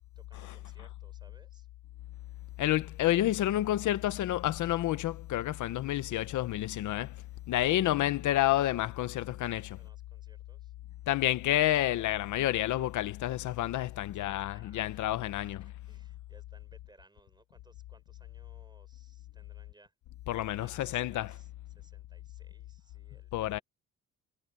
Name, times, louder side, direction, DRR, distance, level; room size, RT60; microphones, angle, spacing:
voice 1, 0.1-1.7 9.7-10.7 14.2-15.0 15.4-19.9 20.6-21.5 21.7-23.6, right 2 dB, 15° right, 6.8 m, -63 dB
voice 2, 2.6-9.8 11.1-15.6 20.3-21.3 23.3-23.6, left 14 dB, 75° left, 0.9 m, -29 dB
cardioid pair, 90°, 30 cm